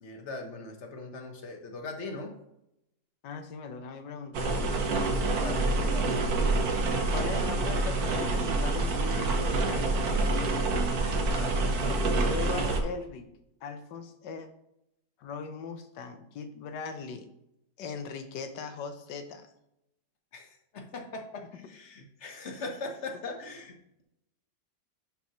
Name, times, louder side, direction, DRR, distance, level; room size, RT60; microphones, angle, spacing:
voice 1, 0.0-2.3 5.2-6.2 11.3-11.8 20.3-23.7, left 3 dB, 45° left, 3 dB, 1.3 m, -40 dB
voice 2, 3.2-4.8 7.1-10.3 11.8-12.0 12.2-13.3 13.6-14.5 15.2-17.3 17.8-19.5, left 5 dB, 80° left, 8 dB, 1.5 m, -39 dB
sound 1, 4.3-12.8, right 2 dB, 60° right, 1.4 m, -27 dB
10.5 x 5.4 x 3.1 m, 0.81 s
omnidirectional pair, 1.9 m